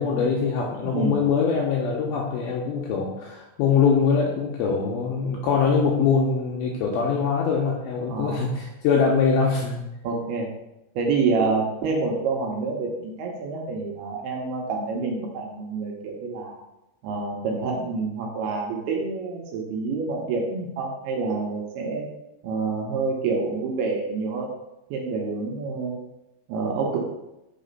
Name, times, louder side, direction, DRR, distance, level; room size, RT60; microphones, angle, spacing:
voice 1, 0.0-9.8, left 5 dB, 85° left, -1 dB, 2.2 m, -23 dB
voice 2, 0.8-1.3 8.0-8.4 10.0-10.5 11.0-16.6 17.0-22.1 22.4-24.5 24.9-26.0 26.5-27.0, right 4 dB, 75° right, 0 dB, 2.5 m, -27 dB
5.8 x 4.1 x 5.3 m, 0.92 s
omnidirectional pair, 5.0 m